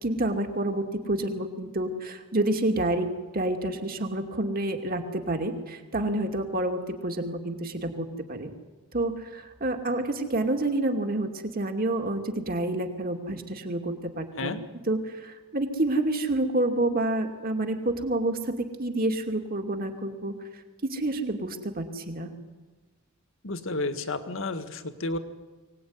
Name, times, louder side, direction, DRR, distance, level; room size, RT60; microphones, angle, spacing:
voice 1, 0.0-3.1 3.3-8.5 8.9-14.6 14.9-20.3 20.8-22.3, right 1 dB, 40° right, 5 dB, 2.5 m, -28 dB
voice 2, 23.4-25.2, left 2 dB, 60° left, 9 dB, 1.7 m, -31 dB
23.5 x 18.5 x 9.7 m, 1.3 s
head